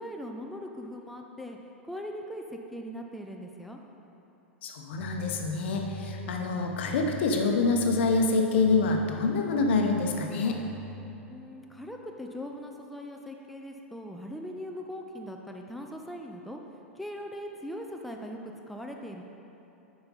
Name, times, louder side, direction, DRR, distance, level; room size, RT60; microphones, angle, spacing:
voice 1, 0.0-3.8 11.3-16.6 17.0-19.2, equal, ahead, 1 dB, 0.4 m, -40 dB
voice 2, 4.6-10.6, left 3 dB, 60° left, 2 dB, 0.8 m, -26 dB
sound 1, 4.9-11.1, left 1 dB, 70° right, 1.3 m, -44 dB
7.8 x 5.1 x 4.0 m, 3.0 s
figure-of-eight pair, 95°, 7 cm